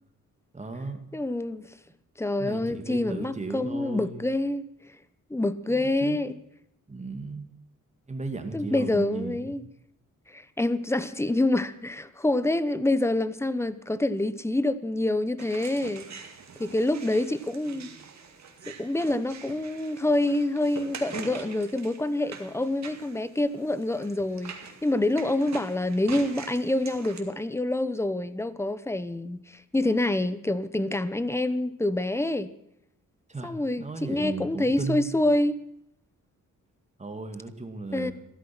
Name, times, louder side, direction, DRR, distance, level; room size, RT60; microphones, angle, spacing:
voice 1, 0.5-1.0 2.4-4.2 5.7-6.2 6.9-7.4 8.1-9.6 33.3-35.1 37.0-38.1, right 3 dB, 20° right, 2.1 m, -35 dB
voice 2, 1.1-1.7 2.2-4.7 5.3-6.3 8.5-9.6 10.3-16.1 16.6-17.9 18.7-24.5 24.8-32.5 33.4-35.6 37.9-38.1, left 1 dB, 10° left, 0.8 m, -27 dB
sound 1, 15.4-27.2, right 5 dB, 60° right, 2.3 m, -44 dB
15.0 x 13.0 x 6.0 m
wide cardioid pair, 120°, 31 cm